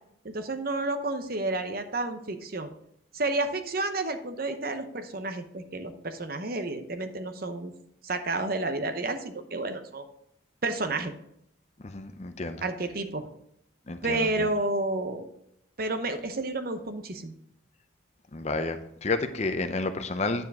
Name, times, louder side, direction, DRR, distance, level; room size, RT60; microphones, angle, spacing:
voice 1, 0.2-2.7 3.1-7.7 8.0-10.0 10.6-11.1 12.6-13.3 14.0-15.3 15.8-17.3, right 2 dB, 50° right, 8 dB, 0.8 m, -30 dB
voice 2, 11.8-12.6 13.9-14.5 18.3-20.5, left 3 dB, 35° left, 9 dB, 0.6 m, -31 dB
9.6 x 7.1 x 3.6 m, 0.74 s
head